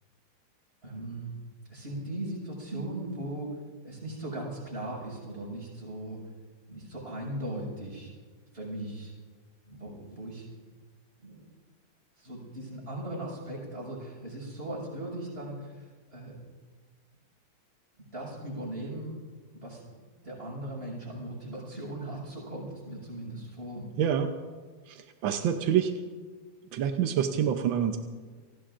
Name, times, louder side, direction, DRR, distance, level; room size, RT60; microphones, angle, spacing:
voice 1, 0.8-1.4 1.7-6.3 6.7-8.1 8.5-9.1 9.6-10.5 11.2-11.5 12.2-16.3 18.0-19.2 19.5-23.9, right 1 dB, 30° right, -3 dB, 6.7 m, -38 dB
voice 2, 24.0-24.3 24.9-25.9 26.7-28.0, right 9 dB, 85° right, 5 dB, 1.6 m, -27 dB
30.0 x 18.5 x 2.6 m, 1.5 s
omnidirectional pair, 2.1 m